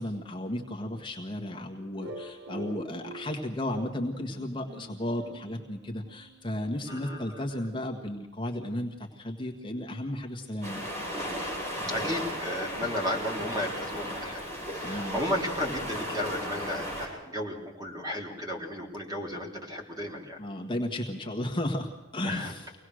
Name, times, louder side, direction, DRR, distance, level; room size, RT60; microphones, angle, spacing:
voice 1, 0.0-10.8 14.8-15.2 20.4-22.7, left 1 dB, 25° left, 1 dB, 1.6 m, -34 dB
sound 1, 2.0-6.6, right 1 dB, 70° right, 1.4 m, -45 dB
voice 2, 6.9-7.4 11.9-14.4 14.7-20.4 22.2-22.5, left 1 dB, 20° right, 0 dB, 3.8 m, -34 dB
sound 2, 10.6-17.1, equal, 35° right, 7.8 m, -35 dB
24.5 x 18.5 x 6.4 m, 1.1 s
head